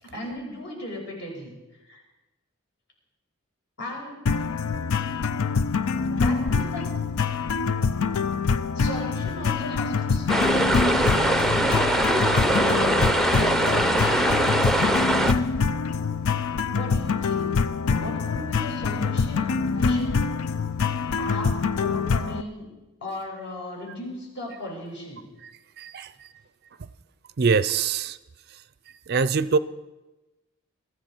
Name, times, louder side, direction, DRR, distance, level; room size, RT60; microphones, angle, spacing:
voice 1, 0.0-1.5 1.9-2.0 3.8-4.2 6.1-6.9 8.7-11.1 11.4-14.4 16.7-17.5 17.9-20.3 21.2-22.7 23.0-25.3, left 1 dB, 55° left, -1 dB, 5.6 m, -36 dB
sound 1, 4.3-22.4, left 5 dB, 75° left, 0.5 m, -25 dB
sound 2, 10.3-15.3, right 1 dB, ahead, 0.6 m, -22 dB
voice 2, 25.8-26.1 27.4-28.2 29.1-29.6, right 5 dB, 45° right, 14 dB, 0.4 m, -23 dB
22.5 x 14.0 x 4.4 m, 1.1 s
head